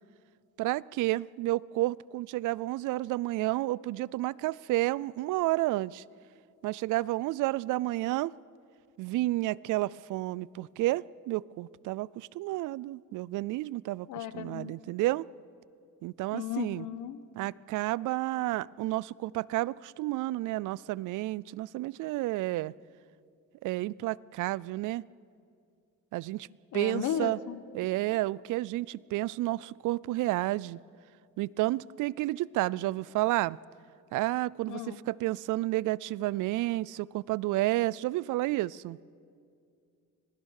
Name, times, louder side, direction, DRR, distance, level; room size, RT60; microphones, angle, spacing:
voice 1, 0.6-6.0 6.6-8.3 9.0-15.3 16.0-16.9 17.4-22.7 23.6-25.0 26.1-26.5 26.7-27.4 27.7-30.8 31.4-33.6 34.1-39.0, right 18 dB, 85° right, 23 dB, 0.5 m, -31 dB
voice 2, 14.1-14.7 16.3-17.2 26.7-27.6 34.7-35.0, left 10 dB, 80° left, 13 dB, 1.2 m, -35 dB
25.5 x 19.5 x 6.5 m, 2.3 s
cardioid pair, 90°, 30 cm